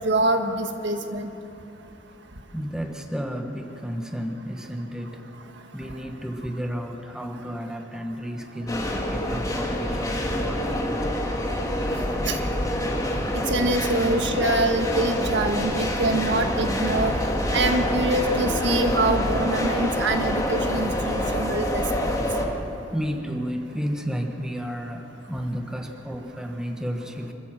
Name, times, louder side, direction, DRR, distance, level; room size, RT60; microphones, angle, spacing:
voice 1, 0.0-1.3 12.3-12.4 13.3-17.1 17.5-22.1, right 2 dB, 65° right, 5 dB, 1.6 m, -25 dB
voice 2, 2.5-5.3 5.7-11.3 13.2-13.4 22.5-27.3, equal, 5° right, 4 dB, 1.2 m, -32 dB
sound 1, 8.7-22.5, left 1 dB, 20° left, 2.1 m, -26 dB
25.5 x 14.5 x 7.5 m, 2.9 s
head